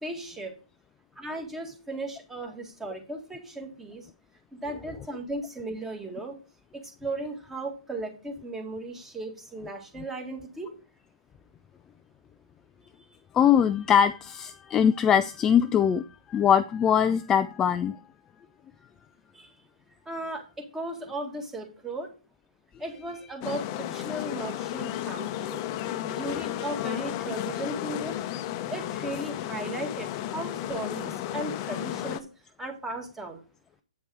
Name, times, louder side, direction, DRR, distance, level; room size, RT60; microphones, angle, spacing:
voice 1, 0.0-0.5 1.2-4.1 4.5-6.3 7.0-10.7 19.3-19.5 20.1-22.1 22.8-25.6 26.0-28.2 28.7-32.3 32.6-33.4, right 2 dB, 10° right, 4 dB, 1.8 m, -36 dB
voice 2, 13.3-18.0, left 8 dB, 15° left, 11 dB, 0.3 m, -22 dB
sound 1, 23.4-32.2, left 12 dB, 35° left, 0.7 m, -33 dB
8.3 x 5.3 x 4.8 m, 0.34 s
hypercardioid pair, 135°, 3 cm